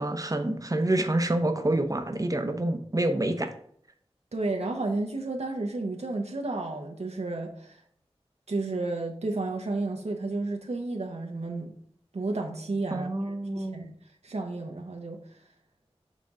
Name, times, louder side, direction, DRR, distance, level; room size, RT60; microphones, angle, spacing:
voice 1, 0.0-3.5 12.9-13.9, right 1 dB, 35° right, 7 dB, 0.7 m, -27 dB
voice 2, 4.3-7.8 8.5-11.7 12.1-13.9 14.2-15.2, right 2 dB, 85° right, 2 dB, 0.9 m, -32 dB
6.5 x 4.0 x 3.7 m, 0.63 s
wide cardioid pair, 55°, 11 cm